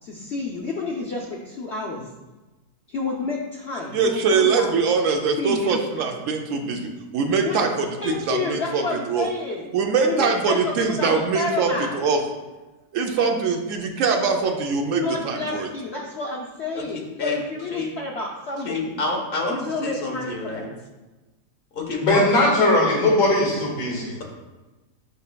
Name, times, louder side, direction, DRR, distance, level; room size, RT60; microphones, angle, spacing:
voice 1, 0.0-2.1 2.9-4.7 5.4-5.8 7.4-7.7 8.0-9.7 10.0-12.0 15.0-19.0 19.5-20.8, left 3 dB, 85° left, -2 dB, 0.5 m, -30 dB
voice 2, 3.9-9.3 9.7-12.2 12.9-15.7, right 5 dB, 75° right, 3 dB, 0.7 m, -23 dB
voice 3, 16.7-17.4 17.7-17.9 18.6-20.7 21.7-22.2, left 3 dB, 40° left, 0 dB, 0.8 m, -28 dB
voice 4, 22.0-24.1, left 1 dB, 70° left, -2 dB, 2.2 m, -19 dB
8.2 x 5.3 x 2.2 m, 1.2 s
omnidirectional pair, 1.9 m